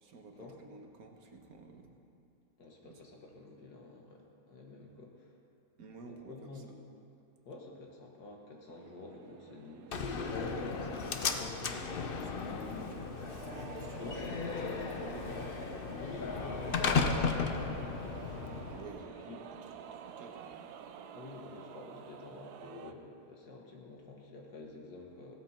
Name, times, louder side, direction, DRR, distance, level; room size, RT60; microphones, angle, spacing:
voice 1, 0.0-2.0 2.8-3.0 5.8-6.7 12.3-13.2 13.5-15.4 18.7-20.7, right 4 dB, 70° right, 3 dB, 1.7 m, -52 dB
voice 2, 2.6-5.3 6.0-6.8 7.5-13.0 14.0-14.2 16.0-18.1 19.1-19.4 21.1-25.3, left 3 dB, 85° left, 0 dB, 2.3 m, -48 dB
sound 1, 8.7-22.9, right 8 dB, 85° right, 1.2 m, -50 dB
Slam, 9.9-18.9, left 5 dB, 45° left, 0.8 m, -35 dB
16.5 x 13.0 x 4.4 m, 2.7 s
omnidirectional pair, 1.7 m